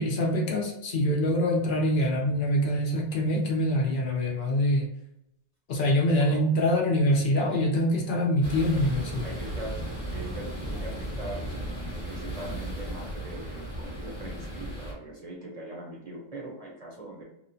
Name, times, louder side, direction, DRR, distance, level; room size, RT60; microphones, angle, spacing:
voice 1, 0.0-4.9 5.7-9.3, equal, 60° left, -1 dB, 0.7 m, -25 dB
sound 1, 8.4-14.9, right 1 dB, 25° left, 1.0 m, -35 dB
voice 2, 9.2-9.8 10.1-11.4 12.0-17.2, right 2 dB, 45° right, -3 dB, 0.5 m, -41 dB
2.9 x 2.0 x 2.6 m, 0.81 s
omnidirectional pair, 1.1 m